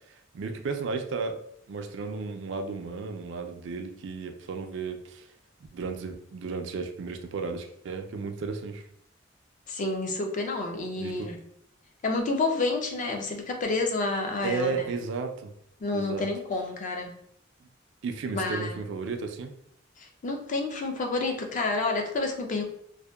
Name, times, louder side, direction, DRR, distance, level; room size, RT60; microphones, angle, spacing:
voice 1, 0.3-1.4 1.7-5.3 5.7-8.9 11.0-11.3 14.4-15.5 15.9-16.3 18.0-19.5, right 4 dB, 70° right, 5 dB, 0.4 m, -33 dB
voice 2, 9.7-11.4 12.0-14.9 15.8-17.1 18.3-18.8 20.0-22.6, left 3 dB, 40° left, 3 dB, 0.4 m, -29 dB
2.6 x 2.1 x 2.2 m, 0.71 s
head